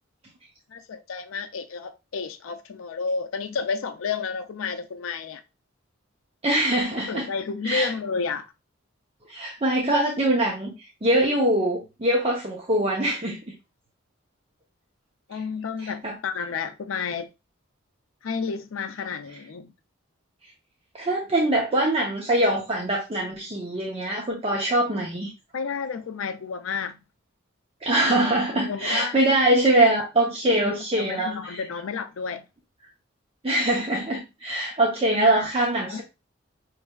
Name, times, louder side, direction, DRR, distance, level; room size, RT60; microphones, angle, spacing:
voice 1, 0.7-5.4 6.9-8.5 15.3-17.3 18.2-19.7 25.5-27.0 28.6-29.2 30.5-32.4 35.1-35.5 35.9-36.0, left 5 dB, 80° left, 0.5 m, -31 dB
voice 2, 6.4-7.3 7.6-7.9 9.3-13.4 15.8-16.1 20.9-25.3 27.8-31.6 33.4-36.0, right 1 dB, 30° right, 0.8 m, -23 dB
5.4 x 3.2 x 2.3 m
head